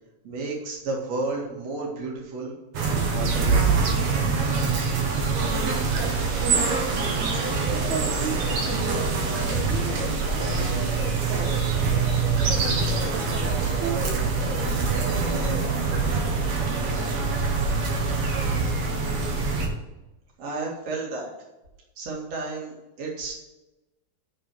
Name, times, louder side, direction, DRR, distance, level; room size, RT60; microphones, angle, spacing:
voice 1, 0.2-2.5 3.1-3.9 20.4-21.3 22.0-23.3, right 3 dB, 45° right, -2 dB, 2.7 m, -32 dB
sound 1, 2.7-19.7, right 4 dB, 65° right, 1.8 m, -24 dB
voice 2, 5.9-11.6 12.6-12.8 13.1-14.3 14.6-17.7, right 6 dB, 80° right, 2 dB, 1.7 m, -36 dB
6.8 x 6.2 x 7.6 m, 1.0 s
omnidirectional pair, 4.9 m